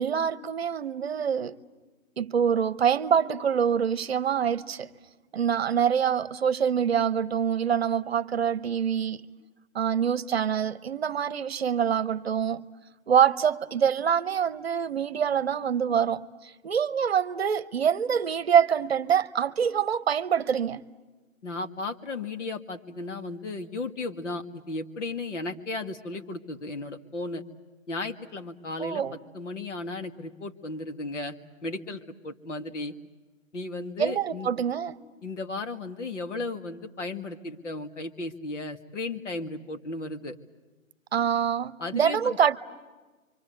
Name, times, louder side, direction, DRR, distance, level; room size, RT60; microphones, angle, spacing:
voice 1, 0.0-1.6 2.2-4.9 5.3-9.2 9.7-12.7 13.1-20.8 28.8-29.2 34.0-34.9 41.1-42.6, right 8 dB, 50° right, 1.0 m, -25 dB
voice 2, 21.4-27.4 27.9-31.4 31.6-32.9 33.5-34.5 35.2-40.4 41.8-42.4, left 2 dB, 60° left, 2.3 m, -35 dB
28.5 x 25.0 x 8.1 m
hypercardioid pair, 160°, 40 cm